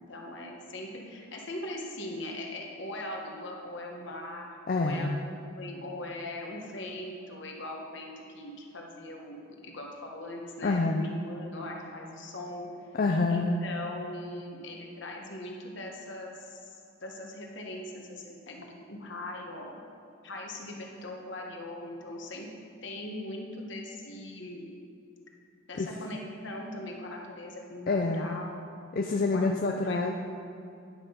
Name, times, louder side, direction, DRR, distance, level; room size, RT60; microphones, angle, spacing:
voice 1, 0.0-12.7 13.3-16.7 17.0-19.8 20.2-22.5 22.8-24.7 25.7-28.6 29.3-29.4 29.8-30.1, left 1 dB, 60° left, 0 dB, 1.2 m, -40 dB
voice 2, 4.7-5.2 10.6-11.0 13.0-13.6 25.7-25.9 27.9-28.4 28.9-30.1, left 3 dB, 45° left, 2 dB, 0.4 m, -27 dB
9.9 x 5.9 x 5.2 m, 2.6 s
head